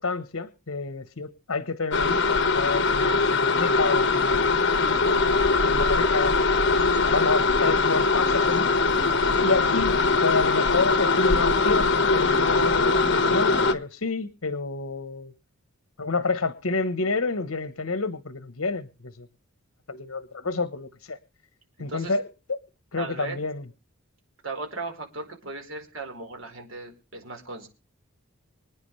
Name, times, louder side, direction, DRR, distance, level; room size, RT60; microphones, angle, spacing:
voice 1, 0.0-4.5 4.8-6.5 7.1-8.7 9.4-15.3 16.0-19.3 19.9-21.2 21.8-22.6 22.9-23.6, left 3 dB, 80° left, 13 dB, 1.2 m, -29 dB
sound 1, 1.9-13.7, left 3 dB, 55° left, 1.5 m, -21 dB
voice 2, 23.0-23.4 24.4-27.7, right 3 dB, 70° right, 3 dB, 4.7 m, -36 dB
26.0 x 9.6 x 3.3 m, 0.32 s
head